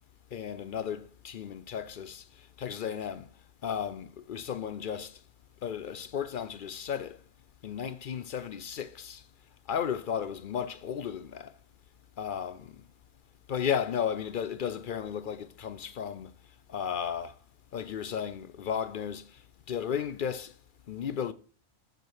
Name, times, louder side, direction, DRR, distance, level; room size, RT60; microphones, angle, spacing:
voice 1, 0.3-2.2 2.6-3.3 3.6-5.2 5.6-7.2 7.6-9.2 9.7-11.5 12.2-12.7 13.5-16.3 16.7-17.3 17.7-19.3 19.7-20.5 20.9-21.3, left 8 dB, 55° left, 0.6 m, -34 dB
7.6 x 5.0 x 6.4 m
omnidirectional pair, 1.3 m